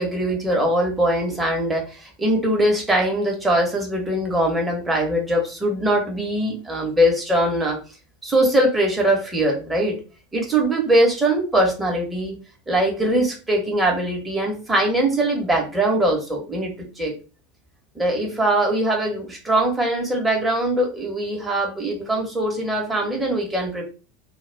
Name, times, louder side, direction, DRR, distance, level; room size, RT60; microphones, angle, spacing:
voice 1, 0.0-7.8 8.2-10.0 10.3-12.4 12.7-17.1 17.9-23.9, right 1 dB, 10° right, 0 dB, 1.0 m, -21 dB
2.3 x 2.3 x 3.3 m, 0.34 s
figure-of-eight pair, 80°, 0 cm